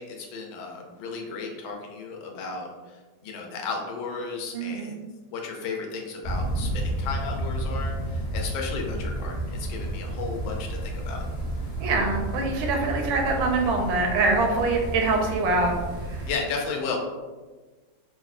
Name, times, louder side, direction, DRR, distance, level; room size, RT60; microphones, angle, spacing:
voice 1, 0.0-3.0 3.2-5.0 5.3-11.2 16.3-17.0, left 4 dB, 85° left, 1 dB, 1.3 m, -34 dB
voice 2, 4.5-4.9 11.8-15.7, right 3 dB, 85° right, 2 dB, 1.4 m, -24 dB
sound 1, 6.2-16.4, right 1 dB, 35° left, 0.7 m, -31 dB
3.6 x 2.1 x 2.4 m, 1.3 s
omnidirectional pair, 2.1 m